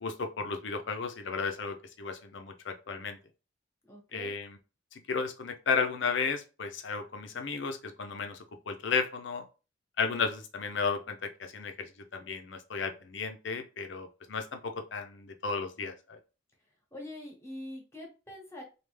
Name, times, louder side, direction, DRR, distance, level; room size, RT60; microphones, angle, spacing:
voice 1, 0.0-3.2 4.1-4.6 4.9-9.4 10.0-16.2, left 5 dB, 70° left, 6 dB, 0.6 m, -34 dB
voice 2, 3.9-4.3 16.9-18.6, left 1 dB, 15° left, -1 dB, 1.0 m, -44 dB
3.3 x 2.3 x 3.2 m, 0.32 s
head